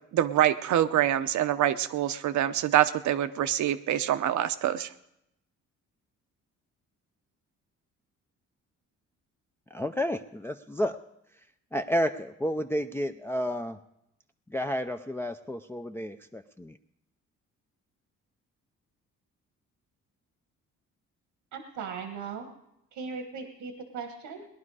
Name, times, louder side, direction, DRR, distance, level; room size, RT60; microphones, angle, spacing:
voice 1, 0.1-4.9, right 11 dB, 70° right, 12 dB, 0.8 m, -25 dB
voice 2, 9.7-11.0 11.7-13.8 14.5-16.8, equal, 10° left, 5 dB, 0.5 m, -31 dB
voice 3, 21.5-22.5 22.9-24.5, right 5 dB, 85° right, 6 dB, 1.5 m, -38 dB
19.0 x 11.0 x 4.9 m, 0.84 s
cardioid pair, 90°, 30 cm